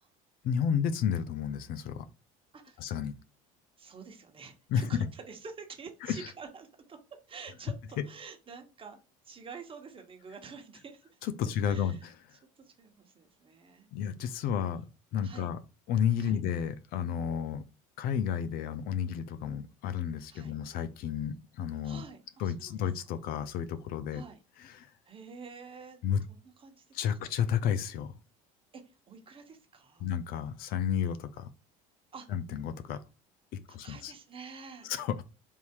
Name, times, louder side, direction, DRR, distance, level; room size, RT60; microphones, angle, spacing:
voice 1, 0.4-2.1 2.8-3.1 4.7-4.8 6.1-6.3 11.2-12.1 13.9-14.9 15.1-15.6 15.9-17.6 18.0-22.0 22.4-24.2 24.6-24.9 26.0-26.2 26.9-28.1 30.0-31.5 32.3-33.0 33.7-34.1 34.8-35.2, left 8 dB, 60° left, 0.5 m, -31 dB
voice 2, 2.5-2.9 3.8-7.0 7.3-9.0 9.2-11.1 11.7-12.0 12.6-13.9 14.2-14.3 14.6-14.8 15.2-15.5 16.2-16.4 20.3-20.6 21.8-22.8 24.1-24.4 25.0-27.0 28.7-30.1 32.1-32.3 33.7-34.9, right 5 dB, 30° right, 1.3 m, -48 dB
3.5 x 2.7 x 4.6 m
supercardioid pair, 90°, 17 cm